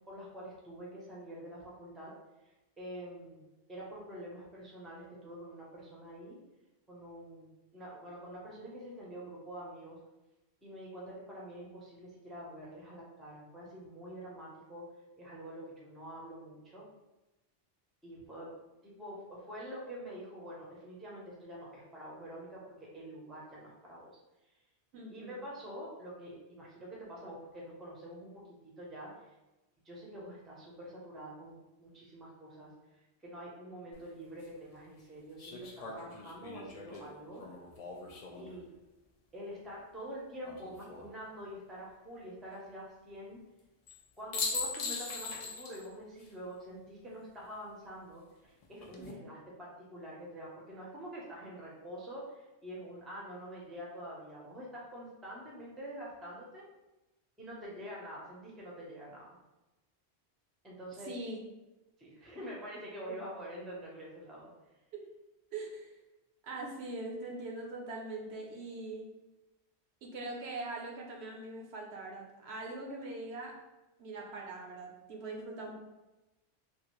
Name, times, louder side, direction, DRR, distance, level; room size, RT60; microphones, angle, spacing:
voice 1, 0.1-2.1 2.4-3.4 3.7-6.4 6.9-10.0 10.6-14.8 15.2-16.8 18.0-18.5 18.8-24.1 25.1-28.3 28.6-29.3 29.8-37.4 38.4-38.6 39.3-43.4 44.2-56.6 57.4-59.3 60.6-61.1 62.0-64.5, equal, ahead, -4 dB, 0.5 m, -46 dB
voice 2, 24.9-25.4 49.0-49.1 61.0-61.4 64.9-65.0 65.5-65.9 66.4-69.1 70.0-73.6 74.0-75.7, right 2 dB, 75° right, 0 dB, 0.9 m, -42 dB
sound 1, 33.9-34.0 35.4-38.6 40.4-41.1 43.9-44.0 44.3-45.9 46.2-46.3 48.6-49.1, left 3 dB, 60° left, 0.4 m, -40 dB
3.1 x 2.4 x 3.0 m, 1.0 s
omnidirectional pair, 1.1 m